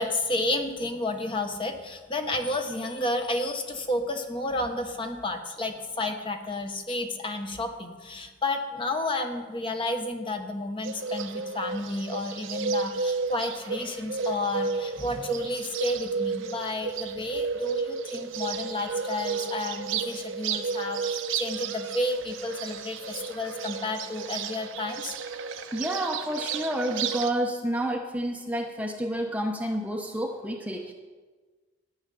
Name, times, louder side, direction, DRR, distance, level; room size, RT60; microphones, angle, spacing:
voice 1, 0.0-25.1, left 2 dB, 25° left, 5 dB, 1.1 m, -31 dB
Bird, 10.8-27.3, right 5 dB, 75° right, 0.9 m, -32 dB
voice 2, 25.7-30.9, right 1 dB, 5° right, 2 dB, 0.8 m, -29 dB
13.0 x 6.5 x 9.9 m, 1.4 s
head